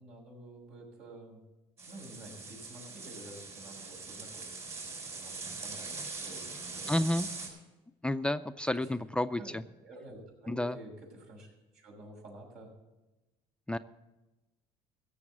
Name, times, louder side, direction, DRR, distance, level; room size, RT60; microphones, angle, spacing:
voice 1, 0.0-1.4 1.9-7.1 8.8-9.1 9.4-12.7, right 1 dB, 80° right, -2 dB, 5.6 m, -50 dB
sound 1, 1.8-7.5, right 4 dB, 60° right, 6.1 m, -42 dB
voice 2, 6.9-7.3 8.0-9.6 10.5-10.8 13.7-13.8, left 1 dB, 10° left, 11 dB, 0.4 m, -30 dB
15.5 x 7.1 x 7.4 m, 1.1 s
supercardioid pair, 95°, 13 cm